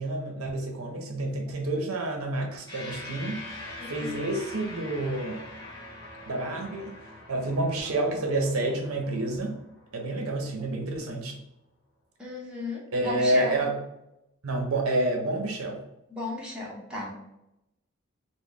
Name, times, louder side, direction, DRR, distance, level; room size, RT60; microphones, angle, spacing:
voice 1, 0.0-5.4 6.3-7.0 7.3-9.6 9.9-11.4 12.9-13.7 14.4-15.8, right 1 dB, 90° right, 2 dB, 0.7 m, -29 dB
sound 1, 2.7-11.3, left 2 dB, 20° left, 1.0 m, -44 dB
voice 2, 3.8-4.2 12.2-13.6 16.1-17.1, left 1 dB, 5° right, -5 dB, 0.8 m, -35 dB
3.8 x 2.2 x 3.1 m, 0.87 s
head